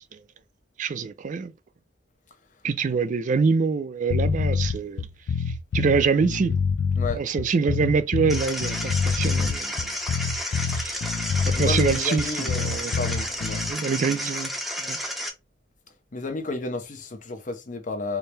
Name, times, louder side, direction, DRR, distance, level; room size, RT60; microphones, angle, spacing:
voice 1, 0.8-1.5 2.6-5.1 5.7-6.5 7.2-9.9 10.7-11.0 11.5-12.9 13.7-14.5 14.8-15.0, right 5 dB, 45° right, 0.4 m, -25 dB
sound 1, 4.1-13.7, left 5 dB, 70° left, 0.3 m, -26 dB
sound 2, 8.3-15.3, equal, ahead, 0.7 m, -31 dB
voice 2, 11.5-12.6 12.9-13.6 16.1-18.2, left 3 dB, 45° left, 0.7 m, -32 dB
4.4 x 2.1 x 3.2 m
head